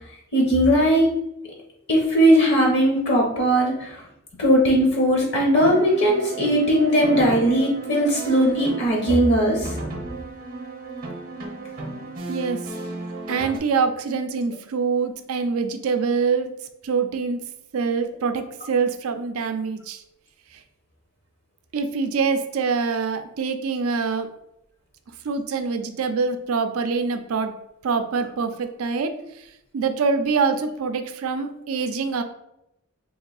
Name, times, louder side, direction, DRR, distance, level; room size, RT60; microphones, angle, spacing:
voice 1, 0.3-1.1 1.9-4.0 4.4-9.7, equal, 55° left, -1 dB, 0.8 m, -19 dB
sound 1, 5.6-13.6, right 3 dB, 40° right, 0.7 m, -34 dB
voice 2, 12.3-12.6 13.3-16.5 16.8-17.4 17.7-20.0 20.5-20.6 21.7-24.3 25.2-27.5 27.8-29.5 29.7-32.2, right 5 dB, 70° right, 8 dB, 0.4 m, -25 dB
3.0 x 2.6 x 3.9 m, 0.83 s
head